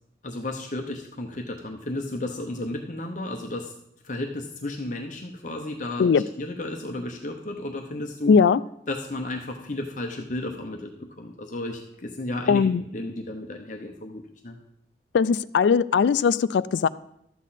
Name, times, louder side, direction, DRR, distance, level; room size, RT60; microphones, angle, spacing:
voice 1, 0.2-3.7 4.0-6.1 6.4-8.3 8.9-14.6, left 2 dB, 45° left, 2 dB, 0.8 m, -33 dB
voice 2, 8.3-8.6 12.5-12.8 15.1-16.9, left 6 dB, 90° left, 17 dB, 0.3 m, -19 dB
12.5 x 8.2 x 4.1 m, 0.75 s
head